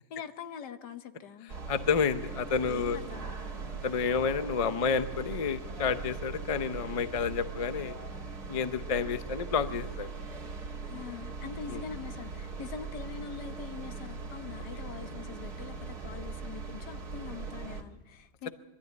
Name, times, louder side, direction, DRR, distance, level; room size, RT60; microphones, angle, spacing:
voice 1, 0.1-1.5 2.4-3.6 10.8-18.5, left 7 dB, 80° left, 1.7 m, -44 dB
sound 1, 1.5-17.8, right 4 dB, 65° right, 2.2 m, -40 dB
voice 2, 1.7-3.0 3.8-8.0 8.5-10.1 11.7-11.8, left 6 dB, 40° left, 0.5 m, -30 dB
23.0 x 13.0 x 9.4 m
omnidirectional pair, 1.8 m